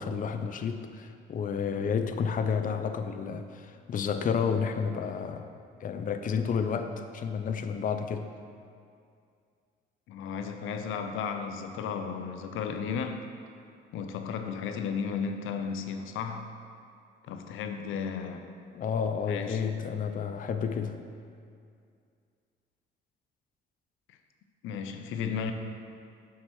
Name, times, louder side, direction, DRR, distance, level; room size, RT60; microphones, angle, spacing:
voice 1, 0.0-5.5 5.8-8.3 18.7-21.0, left 6 dB, 45° left, 7 dB, 0.5 m, -31 dB
voice 2, 10.1-13.3 13.9-16.5 17.3-18.5 19.3-19.6 24.6-25.5, left 6 dB, 85° left, 7 dB, 0.6 m, -34 dB
7.3 x 4.8 x 6.2 m, 2.3 s
cardioid pair, 90°, 20 cm